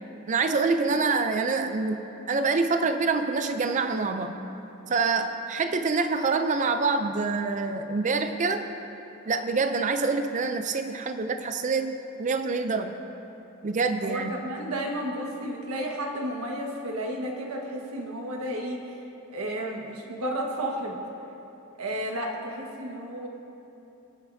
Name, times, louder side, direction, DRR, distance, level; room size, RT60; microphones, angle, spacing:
voice 1, 0.3-4.4 4.9-8.6 9.3-12.9 13.6-14.3, right 4 dB, 35° right, 8 dB, 0.4 m, -26 dB
voice 2, 14.0-19.0 19.3-21.0 21.8-23.3, right 1 dB, 85° right, 0 dB, 1.5 m, -32 dB
21.5 x 9.0 x 2.7 m, 3.0 s
head